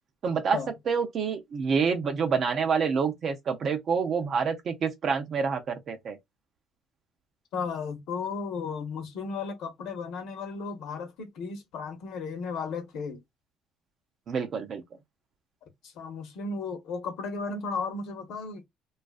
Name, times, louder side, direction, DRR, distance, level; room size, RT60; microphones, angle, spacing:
voice 1, 0.2-0.6 0.9-6.2 14.3-14.8, right 6 dB, 50° right, 0.6 m, -27 dB
voice 2, 7.5-13.2 15.8-18.6, left 4 dB, 70° left, 0.8 m, -34 dB
2.4 x 2.4 x 2.4 m
supercardioid pair, 75°, 0 cm